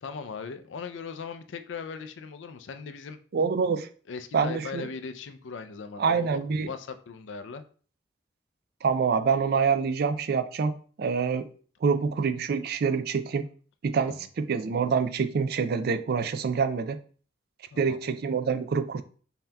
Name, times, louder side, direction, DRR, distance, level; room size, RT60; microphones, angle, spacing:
voice 1, 0.0-3.2 4.1-7.6 14.0-14.1 17.7-18.0, left 5 dB, 85° left, 9 dB, 0.4 m, -39 dB
voice 2, 3.3-3.9 4.3-4.9 6.0-6.7 8.8-10.7 11.0-11.5 11.8-13.5 13.8-17.0 17.8-19.0, right 5 dB, 55° right, 10 dB, 0.4 m, -26 dB
5.4 x 2.8 x 2.2 m, 0.42 s
head